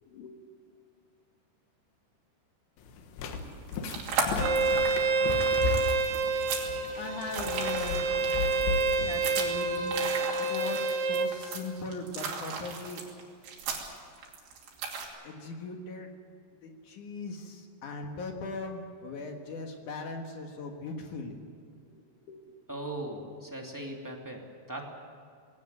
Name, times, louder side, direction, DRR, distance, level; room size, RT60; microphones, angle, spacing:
voice 1, 0.0-0.4 7.0-10.0 10.4-13.0 15.2-16.1 16.5-21.4 21.9-22.6, left 3 dB, 55° left, 3 dB, 2.7 m, -40 dB
sound 1, 2.8-10.2, left 3 dB, 90° left, 3.7 m, -36 dB
sound 2, 3.5-15.1, right 5 dB, 85° right, 4.9 m, -36 dB
Bowed string instrument, 4.4-11.3, right 3 dB, 55° right, 1.7 m, -28 dB
voice 2, 22.7-24.8, right 1 dB, 10° right, 0 dB, 1.3 m, -39 dB
20.0 x 17.5 x 9.4 m, 2.3 s
omnidirectional pair, 4.8 m